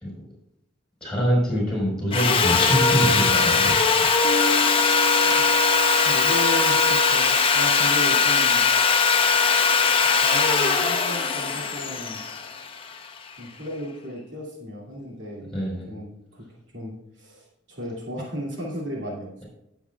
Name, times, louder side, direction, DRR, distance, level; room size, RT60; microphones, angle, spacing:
voice 1, 1.0-4.1 5.2-5.6 15.5-15.9, equal, 5° left, -5 dB, 4.4 m, -25 dB
Sawing, 2.1-13.2, left 4 dB, 30° left, 0.8 m, -20 dB
Bass guitar, 4.2-6.9, left 6 dB, 70° left, 0.5 m, -34 dB
voice 2, 6.0-8.7 10.0-12.2 13.4-15.6 15.9-19.4, equal, 70° right, -3 dB, 2.5 m, -35 dB
19.5 x 7.2 x 2.3 m, 0.84 s
head